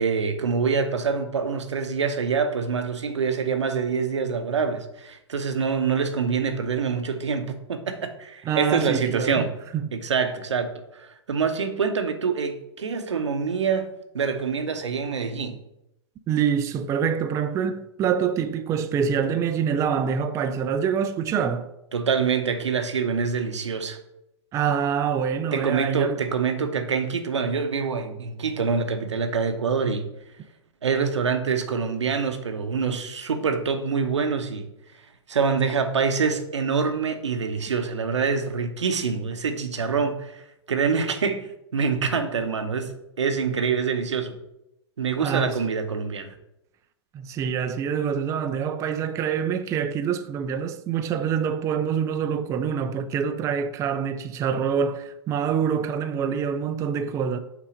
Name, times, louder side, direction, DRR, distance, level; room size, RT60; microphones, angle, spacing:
voice 1, 0.0-9.5 9.9-15.6 21.9-24.0 25.5-30.1 30.8-34.7 35.3-40.4 40.7-44.4 45.0-46.3, right 5 dB, 85° right, 0.8 m, -25 dB
voice 2, 8.5-9.9 16.3-21.7 24.5-26.2 45.2-45.6 47.1-57.4, right 7 dB, 20° right, 0.4 m, -26 dB
5.9 x 3.8 x 5.0 m
hypercardioid pair, 115°, 15 cm